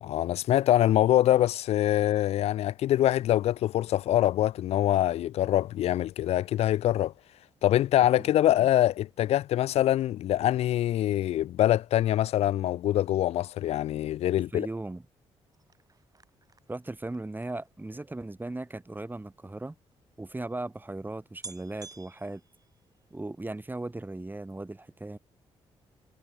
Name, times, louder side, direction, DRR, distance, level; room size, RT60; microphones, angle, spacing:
voice 1, 0.0-7.1 7.6-14.7, left 13 dB, 70° left, 0.4 m, -24 dB
voice 2, 14.4-15.0 16.7-19.8 20.2-22.4 23.1-25.2, right 2 dB, 15° right, 5.3 m, -37 dB
sound 1, 15.5-19.1 19.9-20.0 20.2-20.3 20.9-21.0 21.4-23.3 23.7-24.1 24.4-24.5, right 4 dB, 35° right, 4.8 m, -51 dB
supercardioid pair, 65°, 11 cm